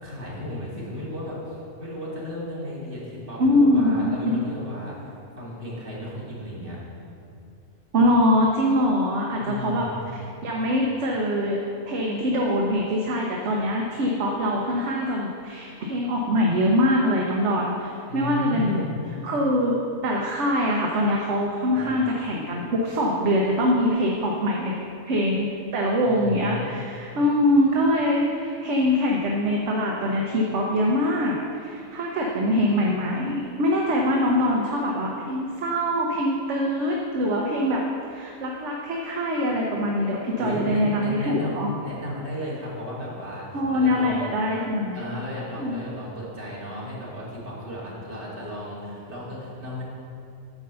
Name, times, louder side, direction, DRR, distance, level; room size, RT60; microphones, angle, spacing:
voice 1, 0.0-5.0 5.4-6.8 9.4-10.0 18.1-18.9 21.7-21.9 26.0-26.7 40.4-44.3 44.9-49.8, left 1 dB, 40° right, -7 dB, 2.5 m, -34 dB
voice 2, 3.4-4.1 7.9-9.9 10.1-18.8 19.2-19.7 20.0-24.8 25.1-37.8 38.1-41.7 43.5-45.0 45.6-45.8, left 1 dB, 55° right, -1 dB, 1.1 m, -23 dB
9.6 x 5.4 x 6.7 m, 2.6 s
omnidirectional pair, 1.5 m